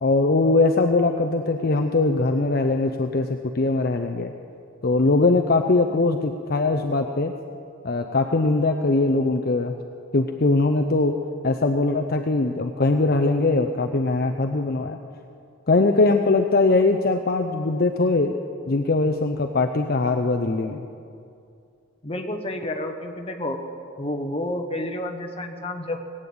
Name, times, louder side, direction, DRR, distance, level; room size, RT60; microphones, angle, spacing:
voice 1, 0.0-4.3 4.8-7.3 7.8-9.7 10.1-11.1 11.4-15.0 15.7-18.4 18.7-20.9, left 3 dB, 45° left, 4 dB, 0.6 m, -21 dB
voice 2, 22.0-23.6 24.0-26.0, left 1 dB, 25° left, 4 dB, 1.2 m, -30 dB
18.5 x 8.9 x 8.6 m, 2.5 s
head